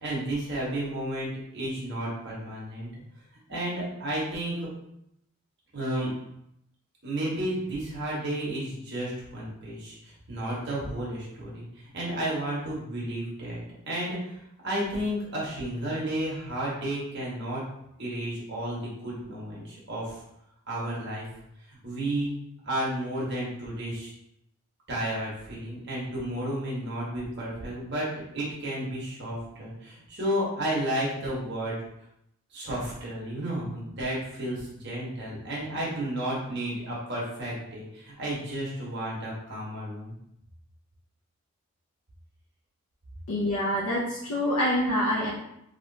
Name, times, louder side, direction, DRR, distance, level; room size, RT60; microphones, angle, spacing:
voice 1, 0.0-2.9 3.5-4.6 5.7-6.1 7.0-13.6 13.9-14.4 14.6-17.6 18.0-20.2 20.7-21.3 21.7-22.3 22.6-24.1 24.9-28.1 28.3-31.8 32.5-40.1, right 1 dB, 50° right, -6 dB, 1.2 m, -32 dB
voice 2, 43.3-45.3, equal, 90° left, -6 dB, 0.6 m, -26 dB
3.0 x 2.9 x 2.7 m, 0.79 s
head